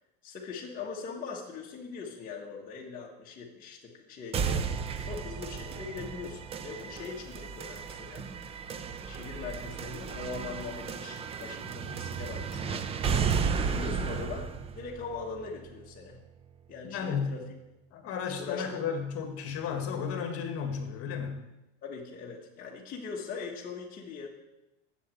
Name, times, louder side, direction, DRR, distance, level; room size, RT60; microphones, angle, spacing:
voice 1, 0.2-4.6 5.0-8.3 8.8-12.8 13.6-16.2 16.7-17.4 18.2-18.8 21.8-24.3, left 5 dB, 25° left, -3 dB, 1.4 m, -41 dB
sound 1, 4.3-16.3, right 6 dB, 20° right, 0.4 m, -34 dB
voice 2, 16.8-17.3 17.9-21.4, left 6 dB, 40° left, 5 dB, 1.8 m, -33 dB
8.3 x 7.4 x 7.7 m, 0.97 s
supercardioid pair, 140°, 35 cm